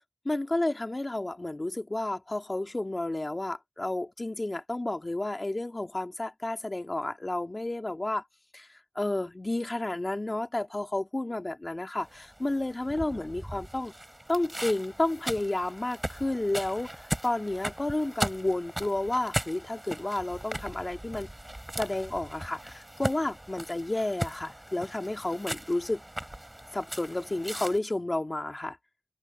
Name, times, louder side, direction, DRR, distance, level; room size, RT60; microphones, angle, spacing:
voice 1, 0.3-8.2 8.5-8.7 8.9-13.9 14.3-21.3 21.8-26.0 26.7-28.8, left 2 dB, 60° left, 2.8 m, -31 dB
sound 1, 12.0-27.8, right 1 dB, 25° right, 5.7 m, -38 dB
wide cardioid pair, 45°, 0 cm